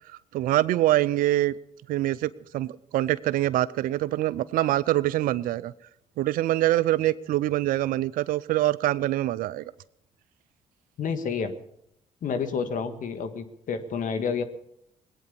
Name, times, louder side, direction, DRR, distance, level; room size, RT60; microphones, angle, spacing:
voice 1, 0.3-1.5 1.9-5.7 6.2-9.6, right 15 dB, 80° right, 18 dB, 0.5 m, -24 dB
voice 2, 11.0-11.5 12.2-14.4, left 6 dB, 65° left, 8 dB, 1.6 m, -29 dB
20.0 x 9.2 x 6.9 m, 0.77 s
supercardioid pair, 55°, 14 cm